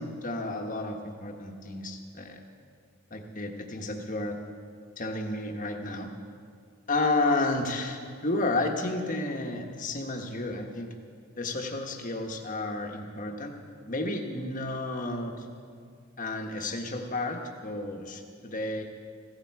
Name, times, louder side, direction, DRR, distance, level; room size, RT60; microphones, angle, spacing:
voice 1, 0.0-2.4 3.1-4.4 5.0-6.1 6.9-10.9 11.4-13.6 13.9-15.4 16.2-18.8, left 2 dB, 35° left, 3 dB, 1.4 m, -31 dB
16.0 x 15.5 x 4.8 m, 2.2 s
head